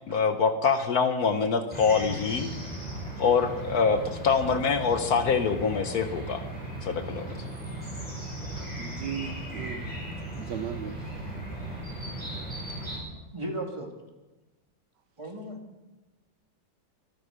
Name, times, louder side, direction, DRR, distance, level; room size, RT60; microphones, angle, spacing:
voice 1, 0.1-2.5 3.2-6.4 6.8-7.3, left 5 dB, 60° left, 8 dB, 1.3 m, -25 dB
sound 1, 1.7-13.0, right 1 dB, 5° left, 5.8 m, -37 dB
voice 2, 7.7-9.3 11.3-11.5 12.3-12.5 13.1-13.9 15.2-15.6, right 1 dB, 15° right, 2 dB, 2.2 m, -40 dB
voice 3, 8.8-9.8 10.3-11.0, right 8 dB, 75° right, 11 dB, 1.4 m, -36 dB
24.0 x 9.3 x 5.1 m, 1.1 s
omnidirectional pair, 2.0 m